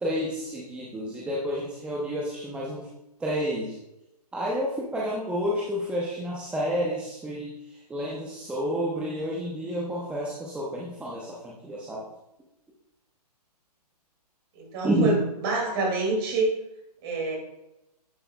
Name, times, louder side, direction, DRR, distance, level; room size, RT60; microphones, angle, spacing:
voice 1, 0.0-2.9 3.2-3.7 4.3-7.5 7.9-12.0 14.8-15.1, equal, 5° right, -5 dB, 0.7 m, -30 dB
voice 2, 14.6-15.2 15.4-16.5 17.0-17.4, right 3 dB, 35° right, 0 dB, 2.4 m, -26 dB
10.5 x 5.5 x 2.3 m, 0.89 s
hypercardioid pair, 135°, 21 cm